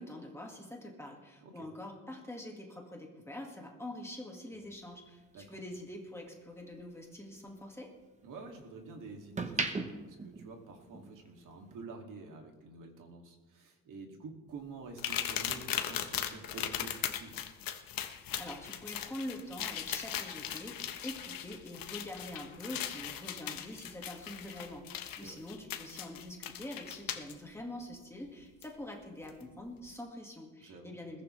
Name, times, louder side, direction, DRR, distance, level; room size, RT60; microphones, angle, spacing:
voice 1, 0.0-7.9 18.4-31.2, left 1 dB, 5° left, 0 dB, 1.9 m, -45 dB
sound 1, 4.5-6.9 7.3-8.7 9.1-11.3 11.6-11.8, right 3 dB, 20° right, 1.0 m, -39 dB
voice 2, 8.2-17.4 25.2-25.4 30.6-31.0, right 4 dB, 60° right, 2 dB, 2.6 m, -48 dB
sound 2, 15.0-27.3 28.6-28.7 29.3-29.4, left 10 dB, 75° left, 1.2 m, -39 dB
21.0 x 16.0 x 3.3 m, 1.2 s
cardioid pair, 180°, 35 cm